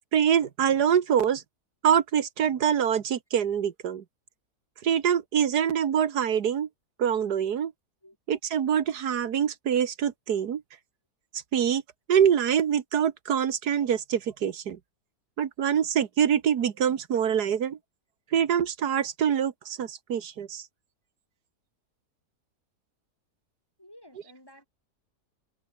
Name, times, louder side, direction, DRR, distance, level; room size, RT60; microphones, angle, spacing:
voice 1, 0.1-1.4 1.8-4.0 4.8-6.7 7.0-7.7 8.3-10.6 11.3-11.8 12.1-14.8 15.4-17.8 18.3-20.7, right 8 dB, 85° right, 1.8 m, -25 dB
voice 2, 23.8-24.7, left 1 dB, 15° left, 7.6 m, -52 dB
omnidirectional pair, 1.6 m